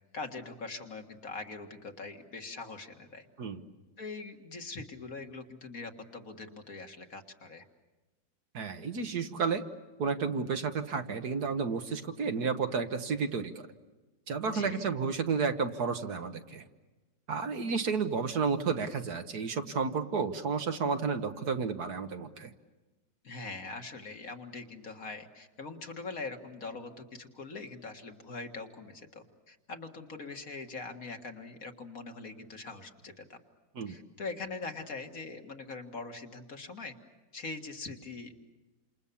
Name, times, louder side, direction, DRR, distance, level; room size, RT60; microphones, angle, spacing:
voice 1, 0.1-3.3 4.0-7.6 14.4-14.9 23.2-33.4 33.9-36.9 37.3-38.4, left 3 dB, 50° left, 4 dB, 2.2 m, -42 dB
voice 2, 8.5-9.6 10.0-13.7 14.3-16.6 17.3-22.5 33.8-34.0, right 5 dB, 60° right, 7 dB, 1.7 m, -31 dB
29.0 x 27.5 x 7.1 m, 1.2 s
omnidirectional pair, 2.0 m